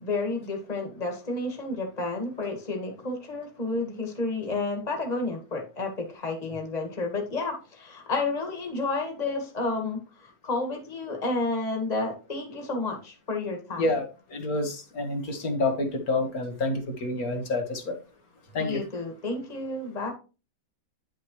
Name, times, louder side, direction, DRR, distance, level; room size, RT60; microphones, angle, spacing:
voice 1, 0.0-14.0 18.6-20.1, left 3 dB, 25° left, 3 dB, 2.0 m, -31 dB
voice 2, 13.8-17.9 18.5-18.8, left 2 dB, 60° left, 5 dB, 1.9 m, -28 dB
9.9 x 6.5 x 3.1 m, 0.32 s
omnidirectional pair, 1.7 m